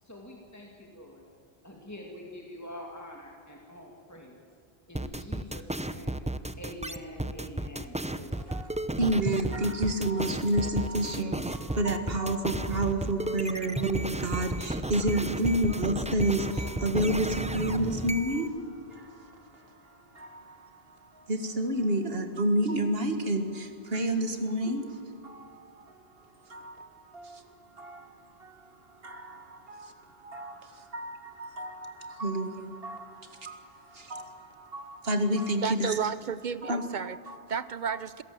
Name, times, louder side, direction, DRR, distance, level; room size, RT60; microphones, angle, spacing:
voice 1, 0.0-1.2 1.6-4.4 4.9-6.2 6.6-8.8, equal, 15° left, 0 dB, 2.5 m, -45 dB
sound 1, 4.9-18.5, right 1 dB, 10° right, 0.6 m, -33 dB
voice 2, 9.0-27.4 27.7-28.6 28.9-34.2 34.7-36.0 36.6-36.9 37.3-37.4, right 1 dB, 70° right, 7 dB, 2.1 m, -30 dB
voice 3, 35.6-37.2 37.5-38.2, right 7 dB, 50° right, 15 dB, 0.8 m, -32 dB
26.5 x 17.5 x 7.6 m, 2.6 s
omnidirectional pair, 1.0 m